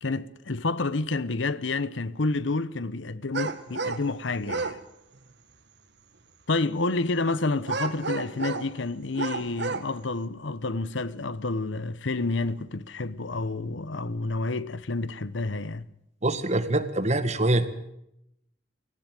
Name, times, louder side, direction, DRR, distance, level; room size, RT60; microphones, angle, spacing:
voice 1, 0.0-4.8 6.5-15.9, left 3 dB, 75° left, 1.0 m, -29 dB
sound 1, 3.3-4.0 4.4-4.8 7.6-8.7 9.1-9.9, right 4 dB, 65° right, 1.8 m, -31 dB
voice 2, 16.2-17.7, right 2 dB, 35° right, 1.8 m, -24 dB
18.5 x 17.5 x 9.2 m
head